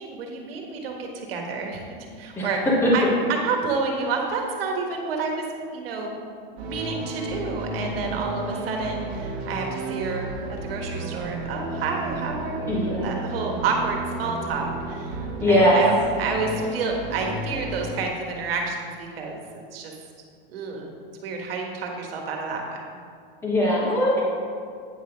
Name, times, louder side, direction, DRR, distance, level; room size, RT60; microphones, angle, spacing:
voice 1, 0.0-2.6 2.9-3.0 3.3-5.4 5.7-6.2 6.5-19.4 19.7-19.9 20.5-20.9 21.2-22.8, right 4 dB, 75° right, 1 dB, 1.5 m, -29 dB
sound 1, 6.6-18.1, right 2 dB, 35° right, 1.6 m, -33 dB
voice 2, 12.7-13.2 15.4-15.8 23.4-24.2, left 1 dB, 10° left, -5 dB, 1.1 m, -20 dB
9.0 x 3.5 x 5.9 m, 2.2 s
supercardioid pair, 165°, 29 cm